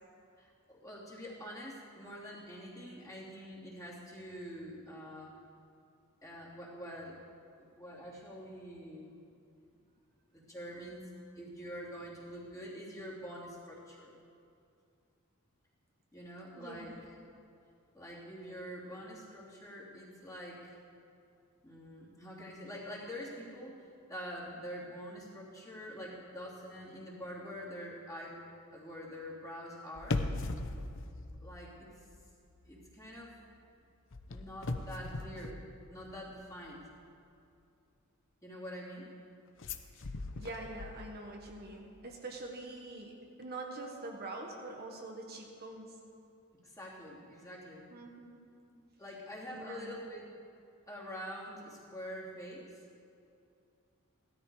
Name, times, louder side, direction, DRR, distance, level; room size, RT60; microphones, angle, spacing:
voice 1, 0.4-5.3 6.2-7.2 7.6-9.1 10.3-11.1 11.3-14.2 16.1-16.9 17.9-20.8 21.6-28.4 28.7-30.2 31.4-32.1 32.7-33.4 34.3-35.6 35.9-36.8 38.4-39.1 46.6-47.9 49.0-50.2 50.9-52.7, equal, 15° left, -5 dB, 3.0 m, -45 dB
voice 2, 16.6-17.1 40.0-45.9 47.9-48.4 49.5-49.9, right 2 dB, 45° right, 1 dB, 1.4 m, -45 dB
sound 1, 30.0-32.2 32.5-32.8 34.1-36.3 39.6-41.5 41.8-41.9, left 2 dB, 60° left, 0.8 m, -39 dB
16.5 x 13.0 x 4.9 m, 2.5 s
head